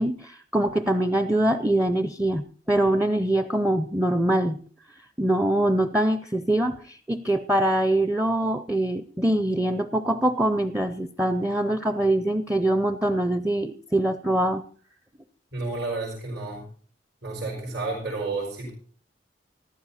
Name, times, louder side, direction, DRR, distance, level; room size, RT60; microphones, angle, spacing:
voice 1, 0.0-4.6 5.2-14.6, right 1 dB, 5° right, 11 dB, 0.5 m, -23 dB
voice 2, 15.5-16.6 17.2-18.7, right 3 dB, 70° right, -4 dB, 4.6 m, -31 dB
14.5 x 11.5 x 4.2 m, 0.44 s
head